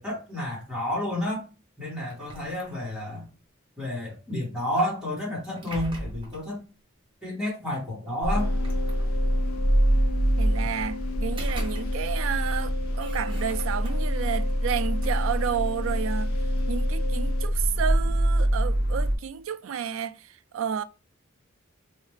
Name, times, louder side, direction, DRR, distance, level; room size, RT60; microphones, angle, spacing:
voice 1, 0.0-1.5 1.8-3.2 3.8-6.6 7.2-8.5, left 1 dB, 5° right, 1.9 m, -30 dB
sound 1, 2.1-3.2 5.2-6.5 7.7-7.8 8.4-9.5 11.1-12.3 12.6-14.2 14.7-16.4, right 1 dB, 25° right, 1.0 m, -43 dB
sound 2, 8.2-19.2, equal, 50° left, 0.9 m, -25 dB
sound 3, 8.4-17.5, left 4 dB, 75° left, 0.3 m, -38 dB
voice 2, 10.4-16.4 16.7-20.8, right 8 dB, 70° right, 0.3 m, -31 dB
3.3 x 3.1 x 3.2 m
head